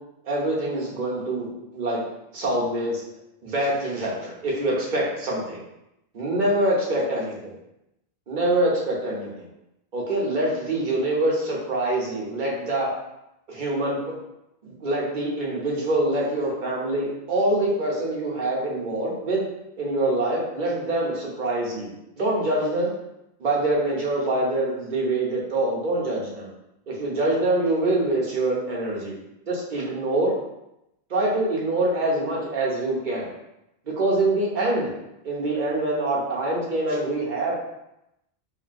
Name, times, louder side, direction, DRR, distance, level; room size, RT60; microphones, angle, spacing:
voice 1, 0.2-2.0 2.3-3.0 3.4-5.6 6.1-7.5 8.3-9.4 9.9-12.9 13.5-14.0 14.6-19.4 19.8-22.9 23.4-26.5 26.9-29.1 29.5-30.3 31.1-33.3 33.9-34.9 35.2-37.6, right 1 dB, 50° right, -4 dB, 0.8 m, -25 dB
2.9 x 2.6 x 2.5 m, 0.86 s
omnidirectional pair, 1.1 m